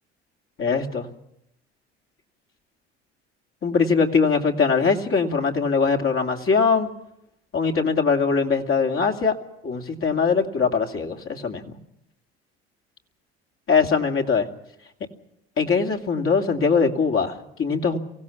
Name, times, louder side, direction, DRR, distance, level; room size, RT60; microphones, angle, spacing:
voice 1, 0.6-1.1 3.6-6.9 7.5-9.4 9.6-11.8 13.7-14.5 15.6-18.0, left 5 dB, 40° left, 3 dB, 2.7 m, -21 dB
24.0 x 16.5 x 7.3 m, 0.80 s
hypercardioid pair, 75°, 32 cm